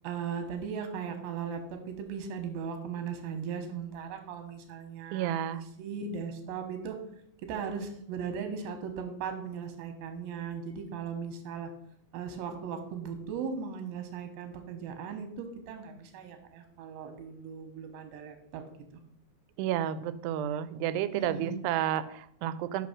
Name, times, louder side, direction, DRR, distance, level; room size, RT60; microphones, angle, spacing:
voice 1, 0.0-7.0 7.4-11.7 12.1-18.6 21.1-21.6, right 6 dB, 75° right, 6 dB, 2.8 m, -38 dB
voice 2, 5.1-5.6 19.6-22.9, right 11 dB, 90° right, 14 dB, 2.6 m, -31 dB
6.0 x 5.8 x 6.0 m, 0.69 s
omnidirectional pair, 4.6 m